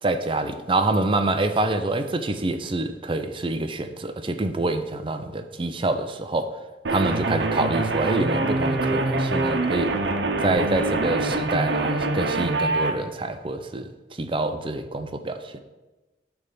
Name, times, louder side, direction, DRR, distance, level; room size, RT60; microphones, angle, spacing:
voice 1, 0.0-6.5 6.9-9.9 10.4-13.9 14.2-15.5, right 2 dB, 30° right, 8 dB, 0.6 m, -26 dB
sound 1, 6.8-12.9, right 2 dB, 90° right, 0.9 m, -24 dB
9.5 x 3.5 x 6.8 m, 1.1 s
head